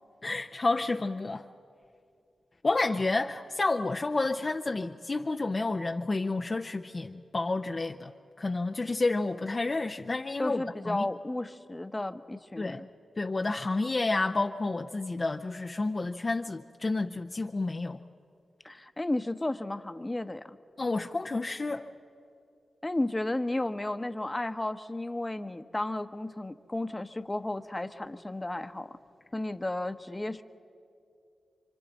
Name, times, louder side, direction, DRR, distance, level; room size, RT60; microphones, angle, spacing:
voice 1, 0.2-1.5 2.6-8.1 8.4-11.0 12.6-12.8 13.2-18.0 20.8-21.9, left 3 dB, 40° left, 4 dB, 0.6 m, -30 dB
voice 2, 10.4-12.9 18.6-20.4 22.8-28.9 29.3-30.4, left 1 dB, 25° left, 9 dB, 1.0 m, -33 dB
28.5 x 25.0 x 4.1 m, 2.5 s
cardioid pair, 45°, 0 cm